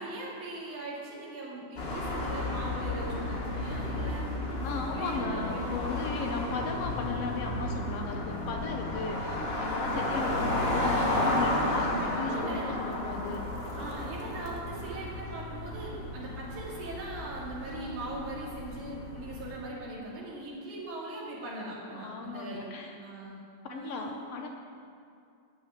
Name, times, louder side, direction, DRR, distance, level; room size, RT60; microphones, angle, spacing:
voice 1, 0.0-4.2 4.9-5.6 8.6-9.0 12.2-12.7 13.8-22.6 23.0-23.4 23.7-24.2, right 2 dB, 85° right, -6 dB, 4.1 m, -40 dB
sound 1, 1.8-19.6, left 1 dB, 50° left, 0.7 m, -33 dB
voice 2, 4.6-13.5 21.9-23.0 23.6-24.5, left 4 dB, 70° left, 3 dB, 1.6 m, -36 dB
13.0 x 6.2 x 9.1 m, 2.4 s
omnidirectional pair, 3.4 m